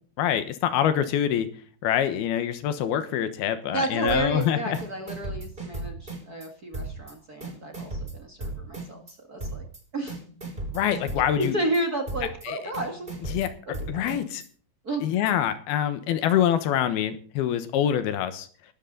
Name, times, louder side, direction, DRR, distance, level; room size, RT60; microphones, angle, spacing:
voice 1, 0.2-1.5 1.8-4.8 10.7-11.6 12.4-12.6 13.3-13.5 13.9-14.4 15.0-18.5, left 10 dB, 75° left, 11 dB, 3.0 m, -25 dB
voice 2, 3.7-9.6 9.9-10.2 11.3-13.3 13.7-14.1 14.8-15.0, right 2 dB, 50° right, 4 dB, 1.1 m, -32 dB
sound 1, 4.1-4.5 4.7-6.5 6.7-7.1 7.4-9.1 9.4-9.8 10.1-11.8 12.1-12.5 12.7-14.5, right 2 dB, 10° right, 6.8 m, -35 dB
19.0 x 13.0 x 3.9 m, 0.43 s
omnidirectional pair, 4.7 m